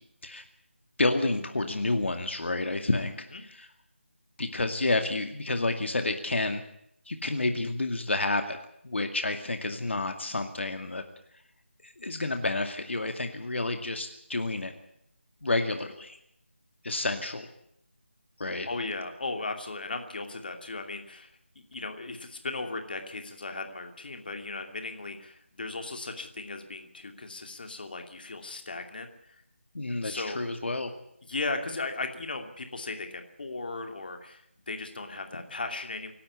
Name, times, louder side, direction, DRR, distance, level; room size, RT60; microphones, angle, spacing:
voice 1, 1.0-3.7 4.4-6.6 7.1-8.6 8.8-11.0 11.8-14.7 15.4-16.2 16.8-17.5 18.4-18.7 29.7-30.9, left 2 dB, 70° left, 6 dB, 2.3 m, -30 dB
voice 2, 18.6-21.3 21.5-29.1 30.0-30.4 31.3-36.1, left 3 dB, 50° left, 5 dB, 2.7 m, -36 dB
25.5 x 12.0 x 9.7 m, 0.73 s
figure-of-eight pair, 170°, 7 cm